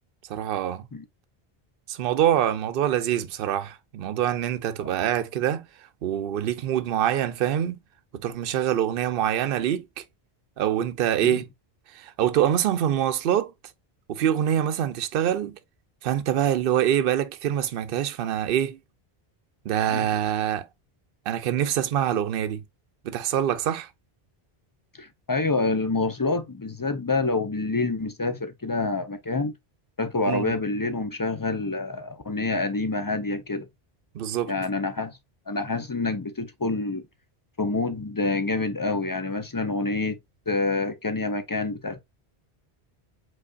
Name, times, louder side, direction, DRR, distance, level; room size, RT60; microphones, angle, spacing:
voice 1, 0.3-0.9 1.9-5.6 6.0-7.8 8.1-10.0 10.6-11.5 11.9-13.5 14.1-15.6 16.0-18.8 19.7-20.6 21.3-22.6 23.0-23.9 30.3-30.5 34.1-34.5, right 10 dB, 65° right, 0.7 m, -25 dB
voice 2, 25.0-29.5 30.0-33.7 34.5-35.2 35.5-37.0 37.6-40.2 40.5-42.0, left 3 dB, 30° left, 0.4 m, -27 dB
5.1 x 3.9 x 2.3 m
omnidirectional pair, 1.0 m